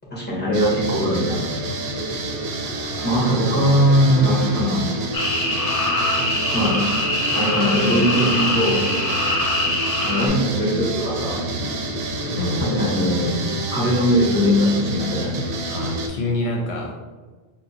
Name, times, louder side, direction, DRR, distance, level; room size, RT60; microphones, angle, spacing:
voice 1, 0.1-1.6 3.0-4.9 6.5-6.7 7.3-8.8 10.0-11.4 12.6-13.4 13.7-15.3, equal, 10° left, -5 dB, 1.1 m, -20 dB
sound 1, 0.5-16.1, right 2 dB, 65° right, 0.8 m, -28 dB
Trumpet, 2.8-9.6, equal, 10° right, 0.5 m, -39 dB
Spadefoot Toad - Yellowstone National Park, 5.1-10.3, left 2 dB, 50° left, 0.4 m, -23 dB
voice 2, 15.6-16.9, left 2 dB, 75° left, 0 dB, 0.8 m, -26 dB
3.8 x 2.2 x 4.0 m, 1.3 s
omnidirectional pair, 1.2 m